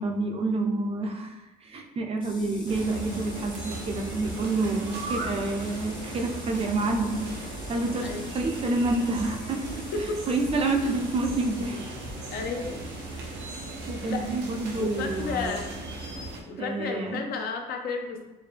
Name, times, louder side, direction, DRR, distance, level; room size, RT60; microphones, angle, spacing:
voice 1, 0.0-9.8 10.3-11.8 13.1-13.2 13.9-15.6 16.6-17.2, right 2 dB, 35° right, 3 dB, 0.5 m, -28 dB
sound 1, 2.2-15.5, left 3 dB, 25° left, 0.6 m, -47 dB
sound 2, 2.7-16.4, right 2 dB, 85° right, 0.7 m, -37 dB
sound 3, 7.2-7.6 8.0-8.4 8.8-9.2 9.6-10.1 10.4-10.9 11.2-11.7 12.0-12.5, right 1 dB, 55° right, 0.9 m, -44 dB
voice 2, 12.3-12.8 14.1-14.3 14.8-15.7 16.5-18.3, left 4 dB, 65° left, 3 dB, 0.6 m, -32 dB
4.6 x 2.1 x 3.3 m, 1.1 s
cardioid pair, 110°, 17 cm